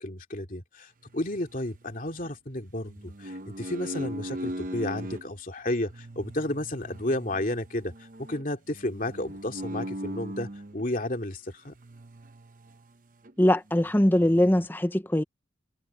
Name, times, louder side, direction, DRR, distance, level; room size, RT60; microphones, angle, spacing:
voice 1, 0.0-7.9 8.2-11.7, left 1 dB, 45° left, 2.5 m, -32 dB
sound 1, 1.1-2.3 2.8-5.2 5.8-10.9 11.7-12.9 13.2-13.3 13.7-14.7, right 1 dB, 45° right, 0.9 m, -40 dB
voice 2, 13.4-15.2, left 1 dB, 10° left, 0.7 m, -22 dB
head